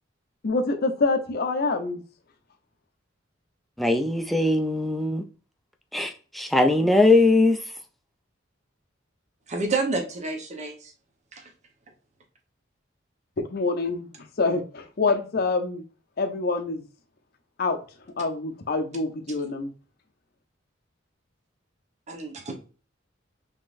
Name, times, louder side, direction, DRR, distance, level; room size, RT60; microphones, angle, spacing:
voice 1, 0.4-2.0 13.4-15.8 16.2-16.8 17.6-17.8 18.2-19.7, left 3 dB, 55° left, 0.6 m, -26 dB
voice 2, 3.8-5.3 5.9-7.6, left 2 dB, ahead, 0.4 m, -20 dB
voice 3, 9.5-10.9 11.3-11.5 22.1-22.5, right 3 dB, 35° right, 0.8 m, -29 dB
3.7 x 3.6 x 2.4 m
head